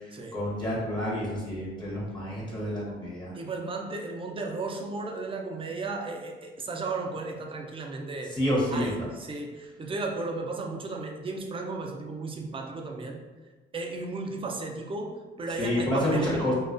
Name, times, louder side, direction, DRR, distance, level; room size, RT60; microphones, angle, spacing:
voice 1, 0.3-3.3 8.3-9.1 15.6-16.5, left 1 dB, 20° left, -5 dB, 0.7 m, -28 dB
voice 2, 3.3-8.3 8.7-13.2 13.7-16.5, right 3 dB, 25° right, 1 dB, 0.4 m, -34 dB
2.3 x 2.2 x 2.4 m, 1.3 s
cardioid pair, 90°, 20 cm